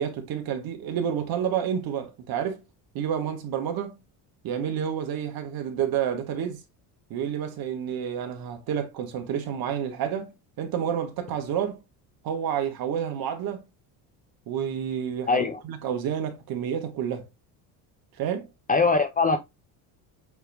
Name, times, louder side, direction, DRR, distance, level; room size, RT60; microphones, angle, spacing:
voice 1, 0.0-2.6 2.9-3.9 4.4-6.6 7.1-11.8 12.2-13.6 14.5-17.3 18.2-18.5, right 8 dB, 55° right, 1.4 m, -29 dB
voice 2, 15.3-15.6 18.7-19.4, left 4 dB, 20° left, 0.4 m, -21 dB
7.9 x 3.0 x 2.2 m
cardioid pair, 130°, 43 cm